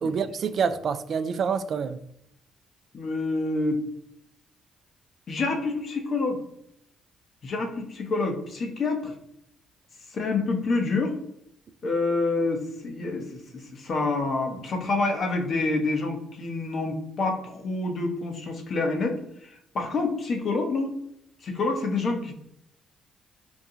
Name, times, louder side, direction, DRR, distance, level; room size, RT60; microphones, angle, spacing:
voice 1, 0.0-2.0, right 6 dB, 60° right, 11 dB, 0.3 m, -27 dB
voice 2, 2.9-3.8 5.3-6.4 7.4-9.1 10.1-11.1 11.8-20.9 21.4-22.3, left 3 dB, 55° left, 3 dB, 0.9 m, -27 dB
4.4 x 2.3 x 2.8 m, 0.75 s
supercardioid pair, 55°, 0 cm